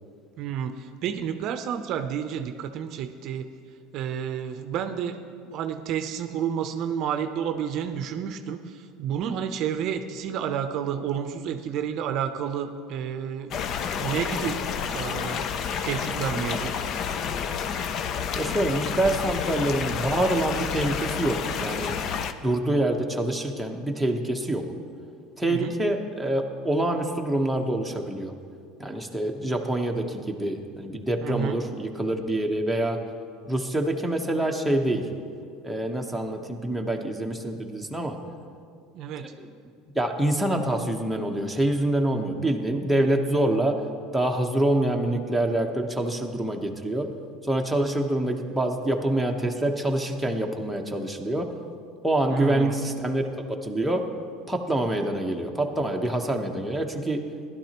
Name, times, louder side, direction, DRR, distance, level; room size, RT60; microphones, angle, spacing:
voice 1, 0.4-3.5 3.9-5.2 5.4-13.6 14.0-14.6 14.9-15.5 15.8-16.8 25.5-25.7 31.2-31.6 38.9-39.3 52.3-52.8, right 8 dB, 55° right, 8 dB, 0.6 m, -30 dB
sound 1, 13.5-22.3, left 7 dB, 45° left, 0.5 m, -30 dB
voice 2, 18.3-21.9 22.4-24.6 25.4-28.3 28.8-33.0 33.5-35.1 35.6-38.2 39.2-39.5 39.9-43.8 44.1-47.1 47.5-51.5 52.0-53.2 53.5-54.1 54.5-57.3, right 1 dB, ahead, 0 dB, 1.0 m, -26 dB
16.0 x 12.0 x 3.0 m, 2.3 s
supercardioid pair, 120°, 0 cm